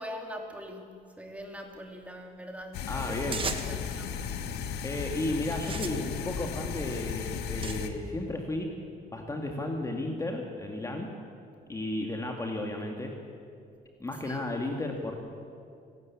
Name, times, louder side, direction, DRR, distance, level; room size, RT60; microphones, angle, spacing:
voice 1, 0.0-4.2 14.2-14.5, equal, 10° right, 2 dB, 3.1 m, -42 dB
sound 1, 2.7-7.9, left 7 dB, 80° left, 1.6 m, -35 dB
voice 2, 2.9-3.4 4.8-8.7 9.1-11.1 11.7-13.1 14.0-15.2, left 2 dB, 20° left, 2 dB, 2.1 m, -33 dB
sound 2, 3.3-3.9 4.7-5.0 5.5-7.8, right 5 dB, 30° right, 1.7 m, -38 dB
28.5 x 12.5 x 8.6 m, 2.4 s
cardioid pair, 110°, 17 cm